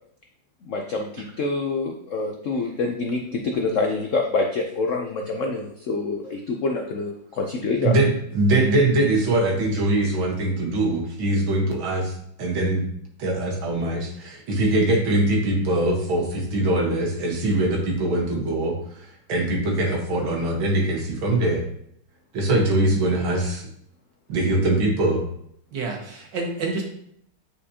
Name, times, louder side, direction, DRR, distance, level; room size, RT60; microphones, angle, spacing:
voice 1, 0.6-8.0, left 3 dB, 80° left, 2 dB, 0.6 m, -26 dB
voice 2, 7.8-12.1 12.4-12.8 13.2-18.8 19.3-21.6 22.3-23.7 24.3-25.2, right 1 dB, 85° right, 0 dB, 2.1 m, -22 dB
voice 3, 25.7-26.8, right 3 dB, 65° right, 0 dB, 1.9 m, -29 dB
8.6 x 5.0 x 2.8 m, 0.70 s
omnidirectional pair, 2.1 m